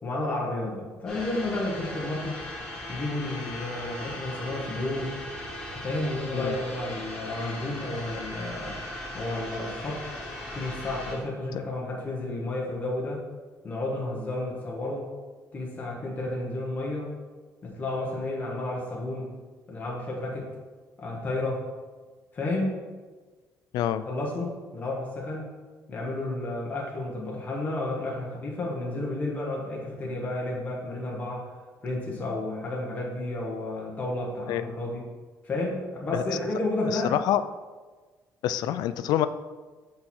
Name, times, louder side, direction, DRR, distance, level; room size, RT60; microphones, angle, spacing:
voice 1, 0.0-2.4 2.9-5.2 5.7-8.8 9.1-10.1 10.5-13.2 13.6-15.1 15.5-17.1 17.6-19.3 19.7-20.5 21.0-21.6 22.3-22.8 24.1-25.5 25.9-31.5 31.8-35.0 35.4-37.2, left 2 dB, 25° left, -3 dB, 1.2 m, -31 dB
sound 1, 1.1-11.1, left 1 dB, 5° left, 2.1 m, -38 dB
voice 2, 36.9-37.4 38.4-39.3, left 11 dB, 85° left, 12 dB, 0.3 m, -26 dB
6.7 x 4.2 x 4.4 m, 1.3 s
cardioid pair, 175°, 7 cm